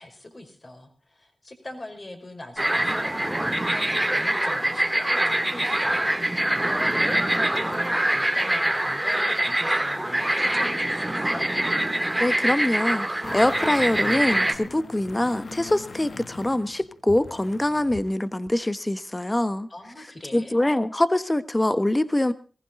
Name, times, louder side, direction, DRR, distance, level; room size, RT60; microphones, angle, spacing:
voice 1, 0.0-6.0 6.6-11.5 19.7-20.6, left 1 dB, 40° left, 5 dB, 5.2 m, -41 dB
sound 1, 2.6-14.5, right 1 dB, 15° right, 2.5 m, -24 dB
voice 2, 12.2-19.7 20.3-22.3, left 1 dB, 20° left, 14 dB, 1.2 m, -24 dB
sound 2, 13.2-18.1 18.5-18.6, left 3 dB, 70° left, 1.4 m, -41 dB
19.5 x 15.5 x 3.8 m, 0.36 s
cardioid pair, 40°, 0 cm